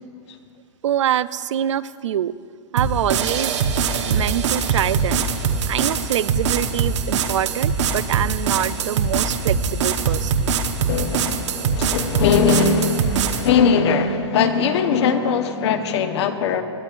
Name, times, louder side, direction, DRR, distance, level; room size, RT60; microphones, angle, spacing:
voice 1, 0.8-2.3 2.7-3.6 4.1-5.3 5.7-10.5, right 11 dB, 90° right, 17 dB, 0.4 m, -25 dB
sound 1, 2.8-13.5, right 5 dB, 75° right, 1.0 m, -22 dB
voice 2, 10.9-16.6, left 5 dB, 65° left, 7 dB, 1.1 m, -20 dB
21.0 x 12.0 x 2.5 m, 2.1 s
hypercardioid pair, 135°, 15 cm